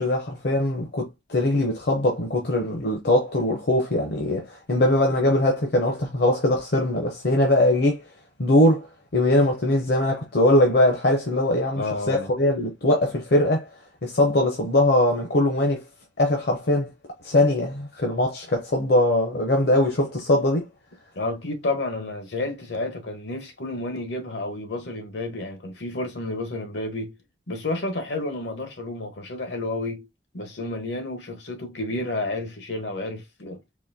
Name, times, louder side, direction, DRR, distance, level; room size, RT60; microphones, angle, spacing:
voice 1, 0.0-8.0 8.4-8.9 9.1-13.7 14.0-15.8 16.2-16.9 17.2-20.7, left 1 dB, 65° left, 0.8 m, -21 dB
voice 2, 11.7-12.3 21.1-27.2 27.5-30.1 30.3-33.6, left 2 dB, 80° left, 1.1 m, -30 dB
4.0 x 2.6 x 2.7 m
head